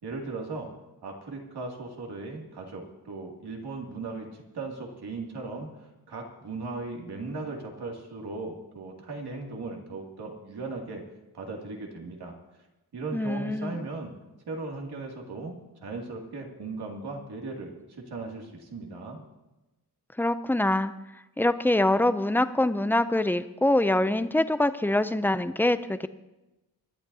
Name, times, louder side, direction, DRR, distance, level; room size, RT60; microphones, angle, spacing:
voice 1, 0.0-0.7 1.0-5.7 6.1-11.0 11.3-12.3 12.9-14.1 14.5-19.2, right 3 dB, 80° right, 0 dB, 2.5 m, -37 dB
voice 2, 13.1-13.8 20.2-20.9 21.4-26.1, left 1 dB, 5° left, 12 dB, 0.4 m, -24 dB
24.5 x 11.5 x 2.7 m, 1.0 s
wide cardioid pair, 150°, 38 cm